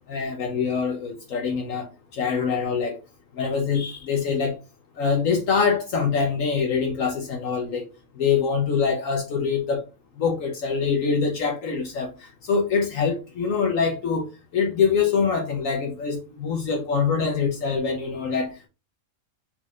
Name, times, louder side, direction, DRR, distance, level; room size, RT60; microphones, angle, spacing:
voice 1, 0.1-3.0 3.3-4.6 5.0-7.8 8.2-9.8 10.2-18.7, left 5 dB, 70° left, 1.1 m, -24 dB
4.5 x 4.0 x 2.4 m
omnidirectional pair, 1.5 m